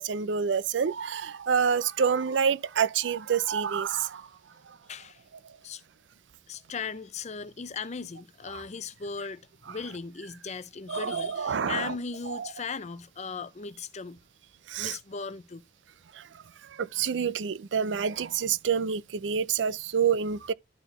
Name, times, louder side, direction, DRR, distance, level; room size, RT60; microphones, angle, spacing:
voice 1, 0.0-4.2 8.5-8.6 10.9-11.9 12.3-12.5 14.7-15.0 16.8-20.5, right 7 dB, 75° right, 0.5 m, -27 dB
voice 2, 4.9-5.2 5.6-5.8 6.5-14.2 14.8-15.6, left 5 dB, 40° left, 0.6 m, -37 dB
12.0 x 4.0 x 4.1 m
head